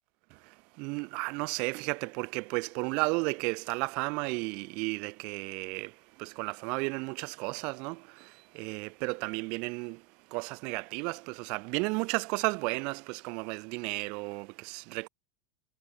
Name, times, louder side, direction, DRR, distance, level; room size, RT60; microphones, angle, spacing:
voice 1, 0.3-15.1, right 30 dB, 45° right, 7.1 m, -34 dB
supercardioid pair, 170°, 2 cm